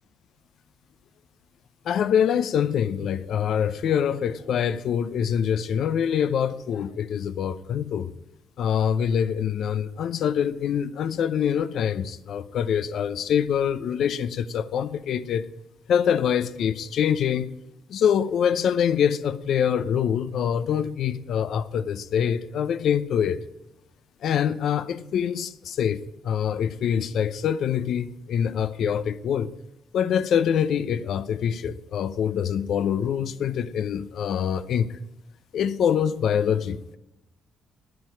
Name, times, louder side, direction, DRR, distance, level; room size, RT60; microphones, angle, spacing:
voice 1, 1.8-8.1 8.6-15.5 15.9-17.5 17.9-23.4 24.2-29.5 29.9-35.0 35.5-37.0, left 8 dB, 70° left, 0.6 m, -25 dB
9.5 x 9.4 x 8.7 m
supercardioid pair, 70°, 0 cm